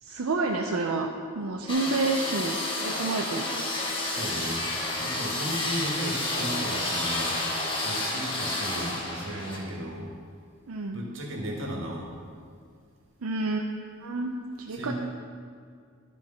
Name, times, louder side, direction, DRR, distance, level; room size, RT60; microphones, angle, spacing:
voice 1, 0.0-1.1 1.3-3.6 10.7-11.1 13.2-13.6 14.0-14.9, right 3 dB, 80° right, 1 dB, 0.6 m, -29 dB
sound 1, 1.7-9.6, left 2 dB, 25° left, 1.2 m, -30 dB
voice 2, 4.1-4.6 5.0-7.4 7.8-10.1 10.9-12.1 14.7-14.9, equal, 60° right, -1 dB, 1.6 m, -35 dB
12.0 x 4.6 x 5.7 m, 2.2 s
head